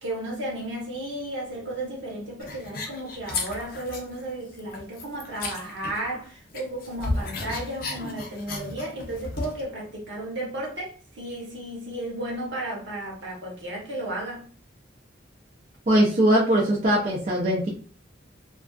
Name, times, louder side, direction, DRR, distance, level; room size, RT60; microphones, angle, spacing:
voice 1, 0.0-14.5, right 1 dB, 75° right, 1.0 m, -34 dB
sound 1, 2.4-4.2 4.5-6.3 6.5-9.6, left 3 dB, 50° left, 0.5 m, -34 dB
voice 2, 15.9-17.7, right 1 dB, 40° right, 0.4 m, -21 dB
2.4 x 2.3 x 2.3 m
head